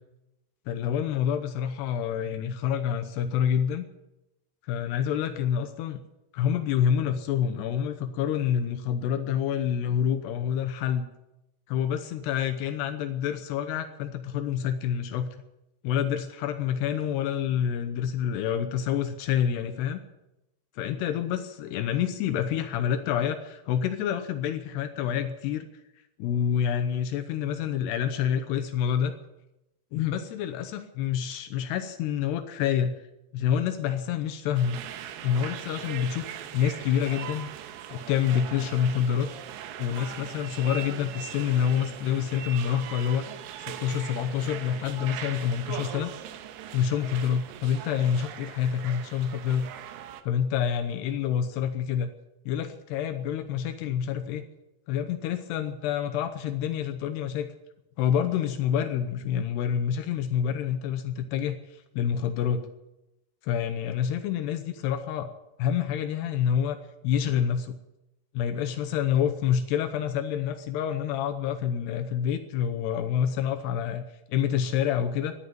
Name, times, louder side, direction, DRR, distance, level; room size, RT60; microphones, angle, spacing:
voice 1, 0.7-3.9 4.6-6.0 6.3-11.1 11.7-15.4 15.8-20.0 20.8-25.7 26.2-29.1 29.9-33.0 33.3-34.8 35.2-36.3 36.5-37.5 37.9-39.3 39.8-43.3 43.6-46.1 46.7-49.7 50.2-52.1 52.5-54.5 54.9-57.5 58.0-62.6 63.4-65.3 65.6-66.8 67.0-67.8 68.3-75.3, left 9 dB, 80° left, 6 dB, 3.0 m, -27 dB
sound 1, 34.6-50.2, right 10 dB, 75° right, 2.8 m, -40 dB
13.5 x 11.0 x 9.1 m, 0.92 s
omnidirectional pair, 4.9 m